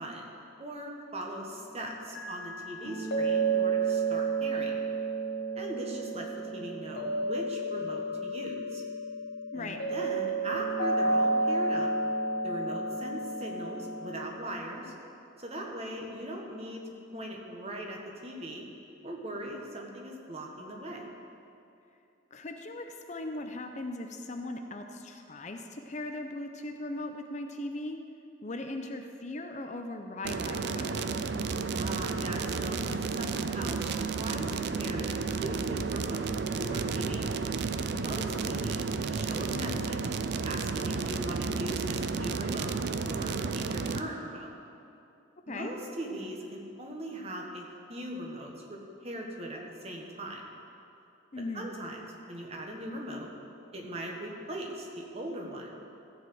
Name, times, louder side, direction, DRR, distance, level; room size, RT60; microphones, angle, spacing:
voice 1, 0.0-4.8 5.5-8.8 9.5-11.9 12.4-14.9 15.4-16.8 17.1-18.6 19.0-21.1 31.7-32.8 33.1-37.3 37.9-40.0 40.4-44.5 45.5-50.4 51.5-52.0 52.3-53.3 53.7-55.8, right 1 dB, 30° right, 0 dB, 1.3 m, -40 dB
sound 1, 2.1-14.2, right 3 dB, 55° left, 1.0 m, -31 dB
voice 2, 22.3-28.0 28.4-30.9 45.5-45.7 51.3-51.7, left 2 dB, 35° left, 5 dB, 0.6 m, -38 dB
sound 2, 30.2-44.0, right 4 dB, 55° right, 0.4 m, -32 dB
14.0 x 4.9 x 7.9 m, 2.7 s
head